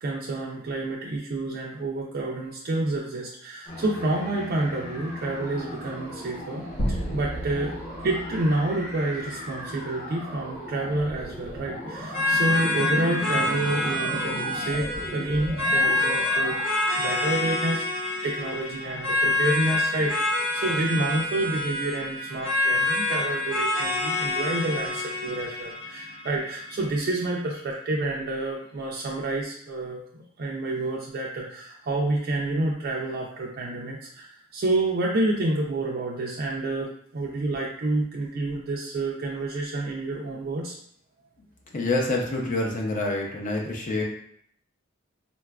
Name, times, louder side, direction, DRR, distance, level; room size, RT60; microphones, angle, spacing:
voice 1, 0.0-7.7 8.0-20.1 20.5-40.7, right 2 dB, 50° right, -3 dB, 0.4 m, -29 dB
sound 1, 3.7-17.1, equal, 20° left, 0.9 m, -38 dB
sound 2, 6.8-9.6, equal, 70° left, 1.0 m, -33 dB
sound 3, 12.1-27.1, left 2 dB, 85° left, 1.2 m, -27 dB
voice 2, 41.7-44.0, left 2 dB, 40° left, -1 dB, 0.5 m, -27 dB
3.9 x 2.3 x 2.2 m, 0.66 s
head